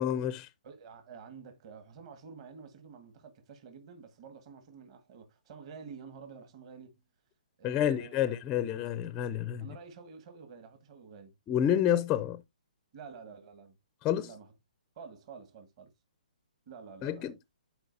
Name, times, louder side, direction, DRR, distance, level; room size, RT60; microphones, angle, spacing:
voice 1, 0.0-0.5 7.6-9.7 11.5-12.4 14.0-14.3 17.0-17.3, left 10 dB, 15° left, 0.4 m, -29 dB
voice 2, 0.6-7.0 7.6-8.4 8.7-8.8 9.6-11.3 12.9-13.8 14.2-14.5 14.9-15.9 16.7-17.4, right 5 dB, 40° right, 1.6 m, -49 dB
11.5 x 4.5 x 2.6 m
hypercardioid pair, 145°, 5 cm